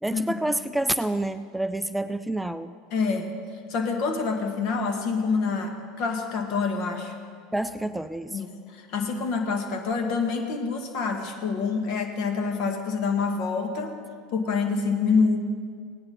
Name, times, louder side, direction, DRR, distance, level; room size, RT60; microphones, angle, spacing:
voice 1, 0.0-2.7 7.5-8.4, right 1 dB, 5° right, 12 dB, 0.3 m, -28 dB
voice 2, 2.9-3.3 3.7-7.2 8.3-14.0 14.3-15.4, left 4 dB, 60° left, 4 dB, 1.7 m, -26 dB
17.0 x 9.6 x 4.2 m, 2.1 s
hypercardioid pair, 85°, 0 cm